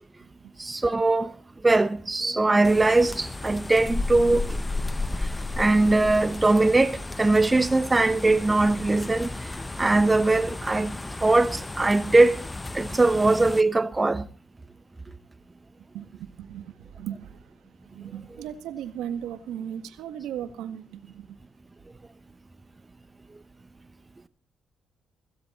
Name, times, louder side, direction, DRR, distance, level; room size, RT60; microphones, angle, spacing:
voice 1, 0.6-1.4 1.6-4.6 5.2-5.3 5.6-9.5 9.8-10.9 11.2-12.4 12.7-14.3, right 2 dB, 20° right, 1.0 m, -21 dB
sound 1, 2.6-13.6, left 2 dB, 15° left, 0.8 m, -33 dB
voice 2, 15.9-17.4 17.9-21.4, right 10 dB, 90° right, 1.6 m, -37 dB
16.5 x 16.5 x 4.2 m
cardioid pair, 90°, 0 cm